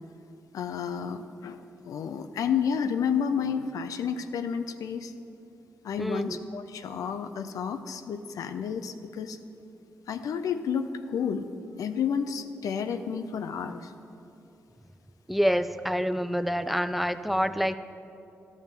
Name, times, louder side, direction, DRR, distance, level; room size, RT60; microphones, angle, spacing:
voice 1, 0.5-5.1 5.8-9.4 10.1-11.5 11.8-13.9, left 7 dB, 80° left, 9 dB, 0.5 m, -31 dB
voice 2, 6.0-6.4 15.3-17.8, equal, ahead, 12 dB, 0.4 m, -27 dB
12.0 x 7.2 x 4.0 m, 2.8 s
supercardioid pair, 55°, 6 cm